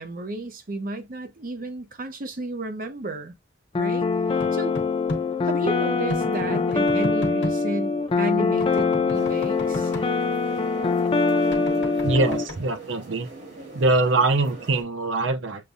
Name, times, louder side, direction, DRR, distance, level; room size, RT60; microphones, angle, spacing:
voice 1, 0.0-3.3 3.8-4.1 4.5-4.7 5.4-9.9, right 2 dB, 50° right, 0.8 m, -32 dB
sound 1, 3.7-12.5, left 4 dB, 30° left, 0.4 m, -23 dB
sound 2, 4.4-5.2 6.1-7.6 8.6-10.1 11.5-12.6, left 1 dB, 70° left, 1.1 m, -33 dB
sound 3, 9.1-14.8, right 2 dB, 65° right, 2.3 m, -42 dB
voice 2, 12.0-13.3 13.7-15.6, right 2 dB, 85° right, 0.6 m, -23 dB
6.6 x 2.3 x 2.6 m
head